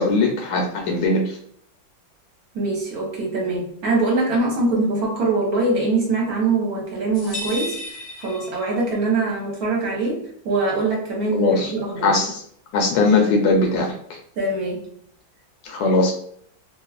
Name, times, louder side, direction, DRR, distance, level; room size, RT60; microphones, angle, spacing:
voice 1, 0.0-1.4 11.3-11.7 12.0-12.4 12.7-13.9 15.6-16.1, left 3 dB, 75° left, 0 dB, 1.2 m, -19 dB
voice 2, 2.5-7.8 8.2-12.1 14.4-14.9 15.9-16.0, right 3 dB, 60° right, -2 dB, 1.2 m, -23 dB
sound 1, 7.1-9.1, left 1 dB, 60° left, 0.5 m, -34 dB
3.0 x 2.3 x 2.3 m, 0.65 s
omnidirectional pair, 2.0 m